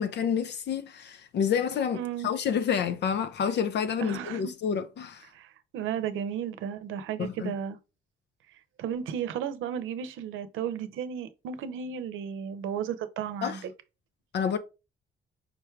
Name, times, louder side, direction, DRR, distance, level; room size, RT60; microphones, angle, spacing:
voice 1, 0.0-5.3 7.2-7.5 13.4-13.6 14.3-14.6, left 7 dB, 60° left, 0.5 m, -29 dB
voice 2, 1.9-2.3 4.0-4.4 5.3-7.8 8.8-13.7, right 8 dB, 80° right, 0.7 m, -34 dB
5.1 x 2.3 x 4.5 m
cardioid pair, 90°, 20 cm